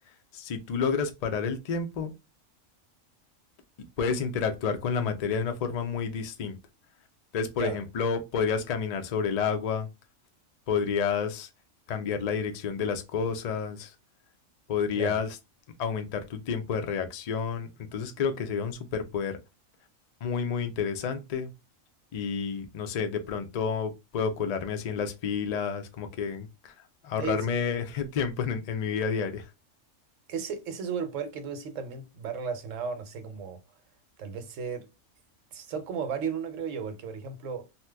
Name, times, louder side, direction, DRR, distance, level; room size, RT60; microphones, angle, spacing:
voice 1, 0.3-2.1 4.0-6.6 7.3-9.9 10.7-11.5 11.9-13.9 14.7-15.3 15.8-19.4 20.2-21.5 22.1-26.7 27.0-29.5, left 6 dB, 75° left, 0.3 m, -30 dB
voice 2, 27.2-27.6 30.3-33.6 34.2-34.9 35.5-37.7, right 6 dB, 75° right, 1.0 m, -34 dB
2.8 x 2.2 x 3.2 m
omnidirectional pair, 1.4 m